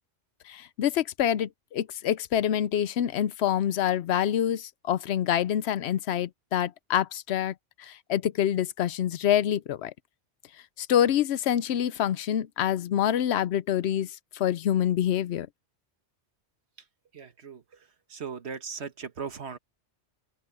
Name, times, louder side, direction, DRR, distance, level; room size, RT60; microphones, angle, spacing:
voice 1, 0.5-7.5 7.8-9.9 10.8-14.1 14.3-15.5, left 10 dB, 75° left, 0.9 m, -26 dB
voice 2, 17.1-19.6, right 6 dB, 75° right, 1.6 m, -39 dB
omnidirectional pair, 1.1 m